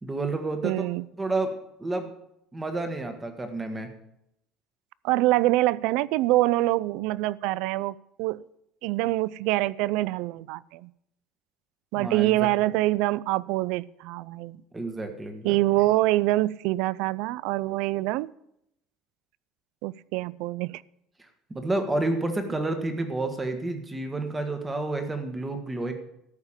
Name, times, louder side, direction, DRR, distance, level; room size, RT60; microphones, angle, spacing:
voice 1, 0.0-0.9 1.2-2.1 2.5-3.9 12.0-12.5 14.7-15.6 21.5-25.9, right 2 dB, 10° right, 6 dB, 1.5 m, -30 dB
voice 2, 0.6-1.1 5.0-8.4 8.8-10.9 11.9-14.6 15.4-18.3 19.8-20.8, right 17 dB, 75° right, 22 dB, 0.4 m, -25 dB
13.5 x 5.9 x 8.8 m, 0.79 s
cardioid pair, 160°, 0 cm